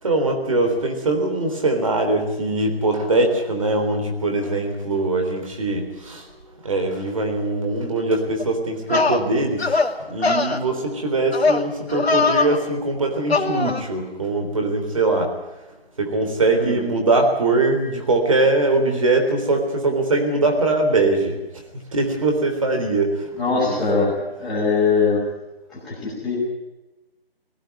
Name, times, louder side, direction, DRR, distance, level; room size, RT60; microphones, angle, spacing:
voice 1, 0.0-6.3 6.6-15.3 16.0-21.3 21.9-23.8, right 2 dB, 35° right, 4 dB, 3.8 m, -22 dB
sound 1, 8.4-8.5 8.9-9.2 9.6-9.9 10.2-10.6 11.3-11.6 11.9-12.6 13.3-13.8, left 3 dB, 85° left, 2.6 m, -20 dB
voice 2, 23.4-24.1 24.4-25.2 25.7-26.3, left 4 dB, ahead, -15 dB, 1.0 m, -21 dB
19.5 x 15.5 x 9.7 m, 1.0 s
figure-of-eight pair, 175°, 31 cm